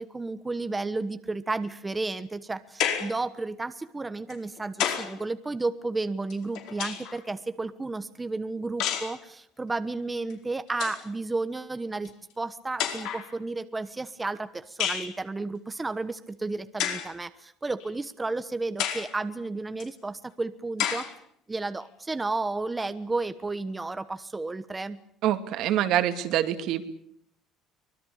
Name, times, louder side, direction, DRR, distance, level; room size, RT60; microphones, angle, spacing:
voice 1, 0.0-21.1 21.5-25.0, right 3 dB, 15° right, 11 dB, 1.1 m, -32 dB
sound 1, 2.8-3.2 4.3-5.2 6.3-7.2 8.8-9.2 10.3-10.4 10.7-11.1 12.0-12.1 12.8-13.3 14.8-15.1 16.8-17.1 17.8-17.9 18.8-19.1 19.8-19.9 20.8-21.1, left 9 dB, 70° left, 4.8 m, -30 dB
voice 2, 25.2-27.1, right 12 dB, 65° right, 9 dB, 2.4 m, -26 dB
24.5 x 20.0 x 8.6 m, 0.68 s
cardioid pair, 130°, 0 cm